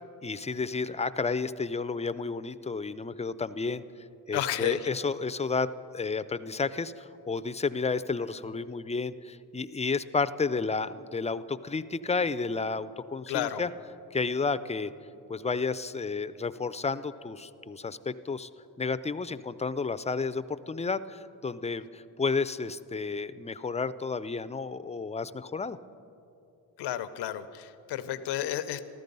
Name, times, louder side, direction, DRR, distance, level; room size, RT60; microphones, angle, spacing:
voice 1, 0.2-3.8 4.3-5.7 5.9-13.7 14.1-14.9 15.3-18.5 18.8-25.8, left 4 dB, 15° left, 14 dB, 0.4 m, -31 dB
voice 2, 4.3-4.9 13.3-13.6 26.8-28.8, left 11 dB, 90° left, 12 dB, 0.7 m, -32 dB
14.0 x 13.0 x 5.4 m, 2.8 s
cardioid pair, 60°, 40 cm